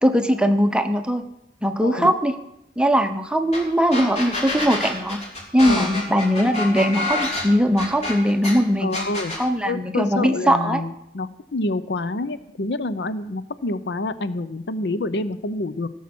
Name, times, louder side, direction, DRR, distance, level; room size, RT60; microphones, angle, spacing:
voice 1, 0.0-1.2 1.6-2.3 2.8-5.2 5.5-9.0 9.4-10.8, equal, 5° right, 7 dB, 0.8 m, -20 dB
voice 2, 1.8-2.1 5.7-6.0 8.8-9.3 9.6-15.9, left 2 dB, 65° left, 13 dB, 0.6 m, -27 dB
sound 1, 3.5-3.6 3.9-8.5 8.9-9.4, left 2 dB, 35° left, 3.1 m, -27 dB
17.0 x 7.2 x 6.1 m, 0.85 s
head